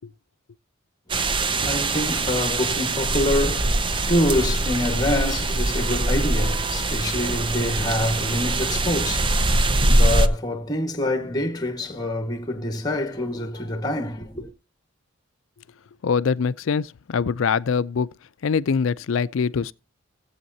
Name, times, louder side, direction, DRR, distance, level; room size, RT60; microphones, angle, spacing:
voice 1, 1.1-14.5, left 1 dB, 20° left, 1.5 m, -26 dB
sound 1, 1.1-10.3, right 2 dB, 25° right, 0.6 m, -23 dB
voice 2, 16.0-18.1 18.4-19.7, left 6 dB, 70° left, 0.4 m, -23 dB
17.0 x 8.0 x 2.7 m
head